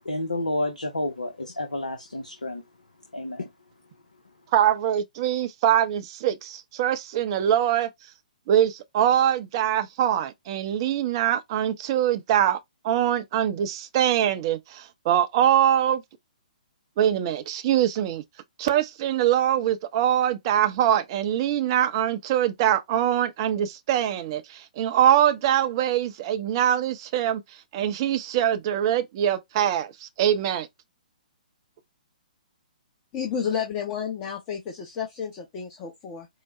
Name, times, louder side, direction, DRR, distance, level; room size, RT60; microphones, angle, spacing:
voice 1, 0.0-2.6 3.1-3.5, left 1 dB, 75° left, 0.8 m, -30 dB
voice 2, 4.5-7.9 8.5-12.6 12.8-16.0 17.0-18.2 18.6-27.4 27.7-30.7, right 10 dB, 35° right, 0.5 m, -23 dB
voice 3, 33.1-34.6 35.0-36.3, left 7 dB, 25° left, 0.7 m, -31 dB
4.7 x 2.1 x 3.0 m
figure-of-eight pair, 125°, 4 cm